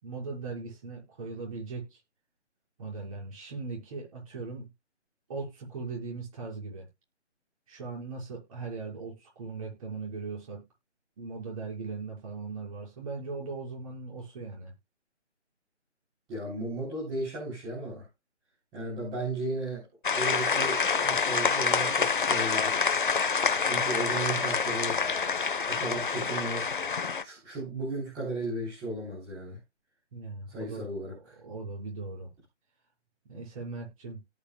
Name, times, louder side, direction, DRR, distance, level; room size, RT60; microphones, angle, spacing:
voice 1, 0.0-2.0 2.8-4.7 5.3-6.9 7.7-10.6 11.2-14.7 30.1-30.9 31.4-32.3 33.3-34.2, right 4 dB, 30° right, 6.2 m, -39 dB
voice 2, 16.3-18.0 18.7-19.9 20.1-23.0 23.6-25.0 25.7-26.7 27.2-29.6 30.5-31.4, right 2 dB, 10° right, 4.0 m, -35 dB
sound 1, 20.0-27.2, left 5 dB, 45° left, 1.3 m, -27 dB
18.0 x 6.3 x 2.4 m
figure-of-eight pair, 155°, 35 cm